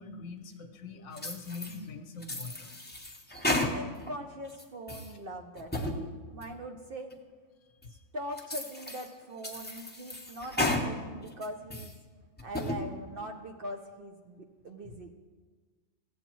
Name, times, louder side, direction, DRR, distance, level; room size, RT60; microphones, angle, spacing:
voice 1, 0.0-2.7 7.8-8.0 14.8-14.9, left 4 dB, 75° left, 6 dB, 1.1 m, -43 dB
sound 1, 1.2-1.8 2.2-4.1 4.5-5.1 5.6-6.0 6.4-6.5 7.1-7.2 7.8-7.9 8.4-9.1 9.4-10.9 11.3-11.9 12.4-12.8, left 1 dB, 10° left, 0.7 m, -33 dB
voice 2, 3.7-5.9 6.3-7.1 7.9-11.9 12.4-15.1, equal, 55° right, 4 dB, 0.7 m, -41 dB
15.0 x 7.9 x 3.1 m, 1.4 s
omnidirectional pair, 1.4 m